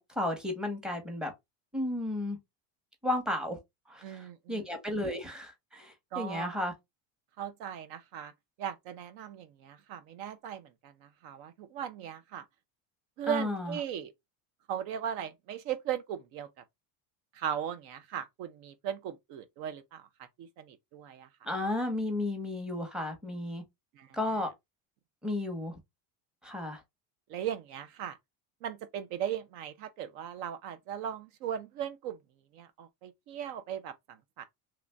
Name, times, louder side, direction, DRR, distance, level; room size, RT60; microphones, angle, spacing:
voice 1, 0.0-1.3 1.7-2.4 3.0-3.6 3.9-6.7 13.3-13.8 21.4-23.6 24.1-24.5 25.2-25.8 26.4-26.8, left 1 dB, ahead, 0.9 m, -33 dB
voice 2, 4.0-4.6 6.1-6.6 7.4-8.3 8.6-12.4 13.2-14.1 14.7-16.5 17.3-20.1 20.4-21.3 24.0-24.2 27.3-28.2 28.6-32.2 32.5-34.4, right 9 dB, 70° right, 0.7 m, -38 dB
3.1 x 2.5 x 3.3 m
supercardioid pair, 130°, 38 cm